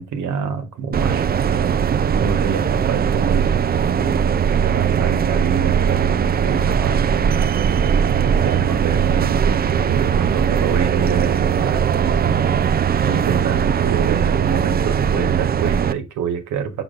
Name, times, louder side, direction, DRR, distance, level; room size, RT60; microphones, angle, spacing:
voice 1, 0.0-1.8 2.2-7.5 7.8-16.8, right 7 dB, 75° right, 1.3 m, -27 dB
sound 1, 0.9-15.9, right 7 dB, 30° right, 0.4 m, -19 dB
6.5 x 6.0 x 2.5 m
cardioid pair, 90°, 30 cm